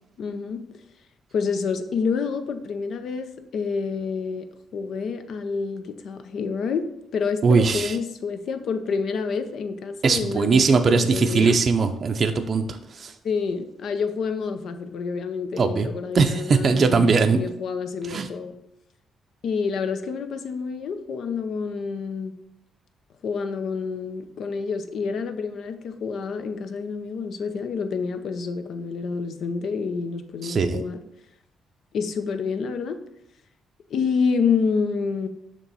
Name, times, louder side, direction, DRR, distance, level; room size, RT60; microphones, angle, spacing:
voice 1, 0.2-0.6 1.3-6.9 7.1-11.6 13.2-18.6 19.4-22.3 23.2-31.0 31.9-33.0 33.9-35.3, left 5 dB, 65° left, 8 dB, 0.6 m, -28 dB
voice 2, 7.4-8.0 10.0-12.6 13.0-13.1 15.6-15.9 16.1-17.4 18.1-18.3 30.4-30.8, right 4 dB, 45° right, 6 dB, 0.5 m, -20 dB
6.7 x 3.0 x 5.5 m, 0.82 s
cardioid pair, 90°, 0 cm